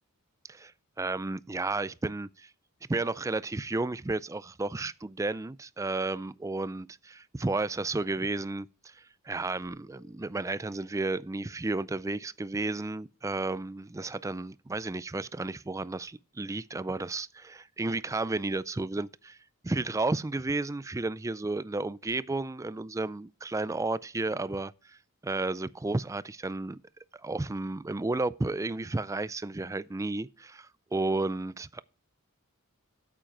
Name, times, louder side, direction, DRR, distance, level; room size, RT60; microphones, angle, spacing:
voice 1, 1.0-2.5 2.9-19.4 19.6-26.8 27.1-31.8, right 2 dB, 15° right, 0.3 m, -32 dB
sound 1, 13.1-13.7, left 9 dB, 20° left, 3.4 m, -66 dB
8.8 x 7.5 x 4.6 m
head